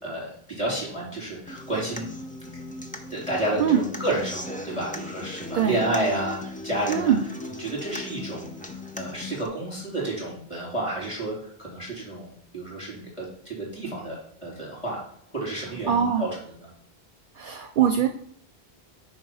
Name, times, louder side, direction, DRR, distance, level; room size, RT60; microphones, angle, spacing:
voice 1, 0.0-2.1 3.1-7.1 7.6-8.5 9.0-15.0 15.3-16.7, right 1 dB, 30° left, -5 dB, 3.2 m, -30 dB
Human voice / Acoustic guitar, 1.5-9.5, left 2 dB, 10° left, 0.4 m, -38 dB
voice 2, 6.9-7.2 15.9-16.3 17.4-18.1, right 8 dB, 60° right, 5 dB, 0.6 m, -22 dB
4.7 x 4.6 x 5.4 m, 0.66 s
omnidirectional pair, 1.1 m